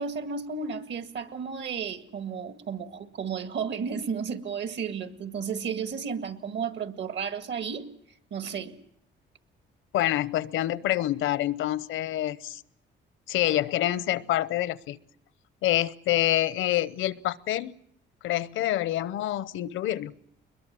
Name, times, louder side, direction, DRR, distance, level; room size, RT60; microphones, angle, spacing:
voice 1, 0.0-7.9 8.3-8.7, right 6 dB, 65° right, 9 dB, 1.9 m, -33 dB
voice 2, 9.9-12.6 13.3-15.0 15.6-17.7 18.2-20.1, left 14 dB, 85° left, 18 dB, 0.8 m, -27 dB
21.5 x 21.5 x 7.6 m, 0.73 s
cardioid pair, 90°, 20 cm